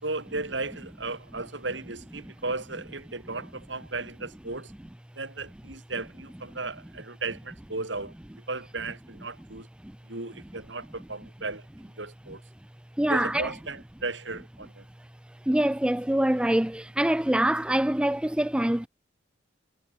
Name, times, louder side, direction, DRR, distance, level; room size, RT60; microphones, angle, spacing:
voice 1, 0.0-4.7 5.2-8.1 8.5-9.7 10.1-11.7 12.0-12.4 13.1-14.8, right 3 dB, 70° right, 4.1 m, -35 dB
voice 2, 13.0-13.5 15.5-18.9, right 1 dB, 5° right, 0.4 m, -24 dB
head